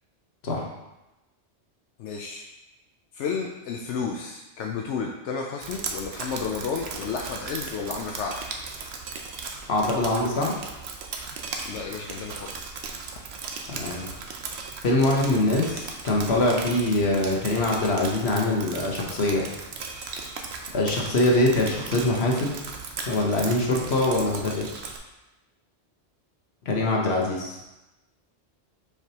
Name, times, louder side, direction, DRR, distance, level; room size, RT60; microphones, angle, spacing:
voice 1, 2.0-2.5 3.1-8.4 11.6-12.5, left 5 dB, 85° left, 0 dB, 0.9 m, -32 dB
Drip, 5.6-25.0, right 4 dB, 70° right, 0.9 m, -37 dB
voice 2, 9.7-10.5 13.7-14.1 14.8-19.5 20.7-22.5 23.0-24.7 26.6-27.6, left 2 dB, 65° left, -1 dB, 1.3 m, -23 dB
6.7 x 4.8 x 2.9 m, 1.0 s
omnidirectional pair, 1.2 m